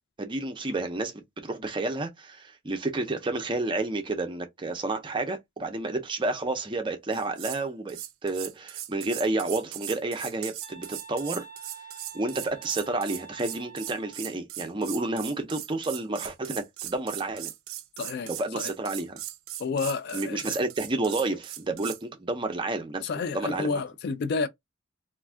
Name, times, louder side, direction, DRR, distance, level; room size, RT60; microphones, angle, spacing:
voice 1, 0.2-11.4 12.1-17.5 18.3-19.2 20.1-23.8, right 2 dB, 25° right, 0.5 m, -30 dB
sound 1, 7.1-7.6 7.9-22.0, right 13 dB, 75° right, 0.4 m, -39 dB
sound 2, 10.6-14.3, right 6 dB, 30° left, 0.8 m, -47 dB
voice 2, 18.0-18.3 18.6-18.7 19.6-20.5 23.0-24.5, left 4 dB, 50° left, 0.3 m, -30 dB
2.5 x 2.3 x 3.4 m
head